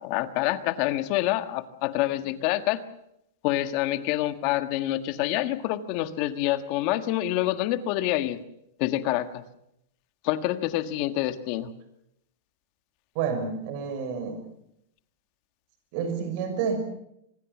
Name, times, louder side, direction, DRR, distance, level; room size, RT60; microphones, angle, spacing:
voice 1, 0.0-2.8 3.4-8.4 8.8-9.3 10.3-11.7, left 14 dB, 35° left, 11 dB, 1.5 m, -27 dB
voice 2, 13.1-14.4 15.9-16.8, right 6 dB, 40° right, 7 dB, 6.0 m, -29 dB
25.5 x 21.0 x 7.3 m, 0.78 s
supercardioid pair, 170°, 0 cm